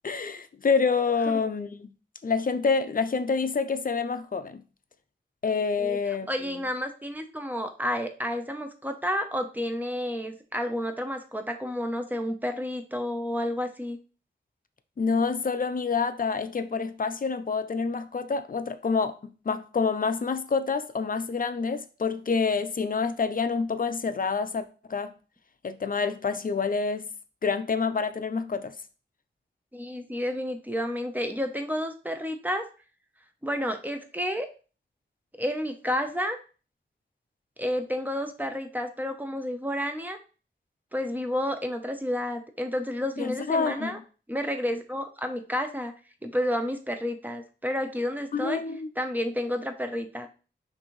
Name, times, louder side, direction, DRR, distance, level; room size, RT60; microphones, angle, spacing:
voice 1, 0.0-1.9 2.2-4.6 5.4-6.3 15.0-25.1 25.6-27.1 27.4-28.7 43.2-44.0 48.3-48.9, left 5 dB, 45° left, 0.5 m, -27 dB
voice 2, 5.8-14.0 29.7-32.7 33.4-34.5 35.4-36.4 37.6-40.2 40.9-44.0 44.3-45.9 46.2-48.6 49.0-50.3, equal, 10° right, 0.7 m, -30 dB
5.9 x 2.7 x 3.1 m
wide cardioid pair, 75°, 19 cm